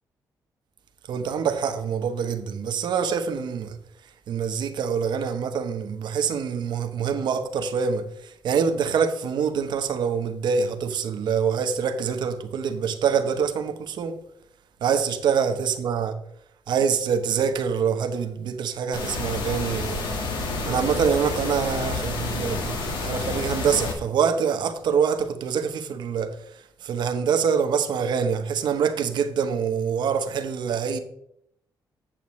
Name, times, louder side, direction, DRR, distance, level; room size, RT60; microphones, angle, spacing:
voice 1, 1.1-3.8 4.3-14.2 14.8-16.2 16.7-20.1 20.7-26.4 26.8-31.0, right 6 dB, 75° right, 0.9 m, -25 dB
sound 1, 18.9-23.9, left 3 dB, 90° left, 1.6 m, -29 dB
8.7 x 7.9 x 3.1 m
cardioid pair, 110°, 8 cm